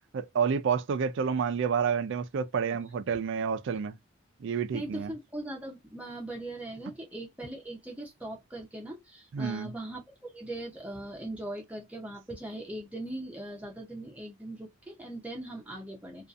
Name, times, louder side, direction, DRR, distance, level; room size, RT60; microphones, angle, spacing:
voice 1, 0.1-4.0 4.4-5.1 9.3-9.7, right 6 dB, 65° right, 0.4 m, -29 dB
voice 2, 4.7-16.3, right 1 dB, 5° right, 0.5 m, -40 dB
2.6 x 2.4 x 2.3 m
head